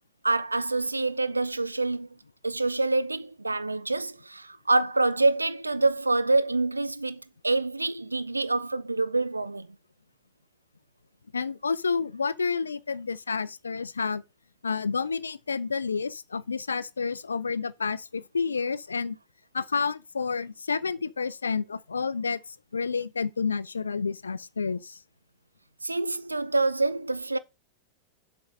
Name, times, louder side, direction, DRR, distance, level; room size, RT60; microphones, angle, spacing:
voice 1, 0.2-2.1 2.4-9.7 25.8-27.4, right 2 dB, 80° right, 0.4 m, -26 dB
voice 2, 11.3-14.2 14.6-19.2 19.5-25.0, left 5 dB, 75° left, 0.4 m, -30 dB
7.8 x 5.3 x 5.1 m
figure-of-eight pair, 90°, 0 cm